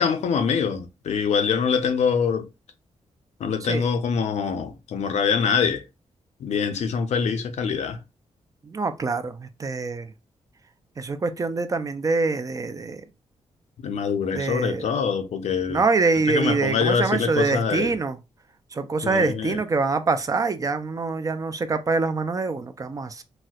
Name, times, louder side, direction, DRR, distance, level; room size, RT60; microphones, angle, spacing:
voice 1, 0.0-2.5 3.4-5.8 6.4-8.0 13.8-15.8 16.3-17.9 19.0-19.6, left 6 dB, 75° left, 0.5 m, -24 dB
voice 2, 3.6-3.9 8.6-10.1 11.0-13.0 14.3-14.9 15.7-18.2 18.7-23.2, right 4 dB, 30° right, 0.3 m, -25 dB
4.1 x 2.1 x 2.3 m
wide cardioid pair, 140°, 12 cm